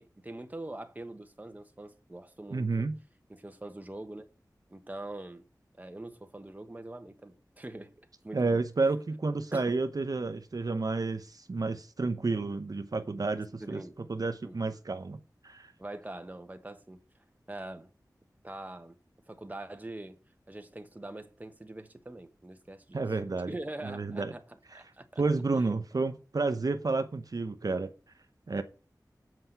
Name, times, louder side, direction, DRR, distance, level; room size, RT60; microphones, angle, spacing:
voice 1, 0.0-2.9 3.3-4.3 4.7-5.4 5.8-8.7 9.5-9.7 13.6-14.0 14.4-14.6 15.8-17.0 17.5-17.9 18.4-19.0 19.3-20.2 20.5-23.0 23.5-24.4 24.7-25.2 25.6-25.8 28.6-28.7, right 1 dB, 25° right, 1.2 m, -43 dB
voice 2, 2.5-3.0 8.3-13.8 14.1-15.2 15.4-15.7 22.9-23.5 23.8-24.3 25.2-27.9 28.5-28.6, right 3 dB, 60° right, 0.8 m, -30 dB
7.7 x 5.7 x 7.8 m
wide cardioid pair, 75°, 7 cm